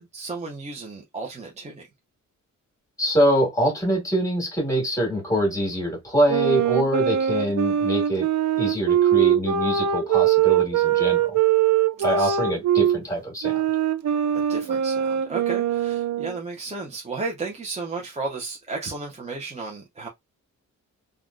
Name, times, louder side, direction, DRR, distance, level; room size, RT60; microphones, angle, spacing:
voice 1, 0.0-1.9 12.0-12.5 14.3-20.1, right 3 dB, 20° right, 0.6 m, -34 dB
voice 2, 3.0-8.3 8.6-11.4 12.0-13.6, equal, 10° left, 1.9 m, -24 dB
sound 1, 6.3-13.0 13.4-16.4, right 10 dB, 65° right, 0.4 m, -22 dB
3.3 x 2.3 x 2.5 m
cardioid pair, 105°, 32 cm